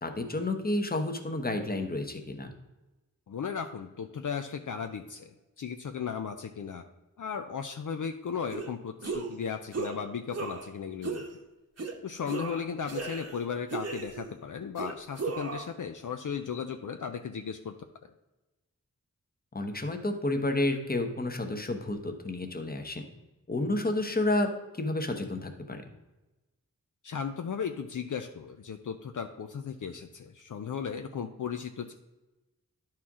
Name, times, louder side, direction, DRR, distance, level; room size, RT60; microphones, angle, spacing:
voice 1, 0.0-2.5 19.5-23.0 23.5-25.8, left 2 dB, 25° left, 5 dB, 1.0 m, -30 dB
voice 2, 3.3-6.8 7.2-11.2 12.0-17.7 18.0-18.1 27.0-31.9, left 6 dB, 65° left, 6 dB, 0.5 m, -36 dB
sound 1, 8.5-8.7 9.0-9.4 9.7-10.0 10.3-10.7 11.0-11.3 11.8-11.9 12.2-13.4 13.7-14.3 14.8-15.7, right 4 dB, 50° right, 1.0 m, -36 dB
11.0 x 4.4 x 3.6 m, 1.1 s
wide cardioid pair, 65°, 33 cm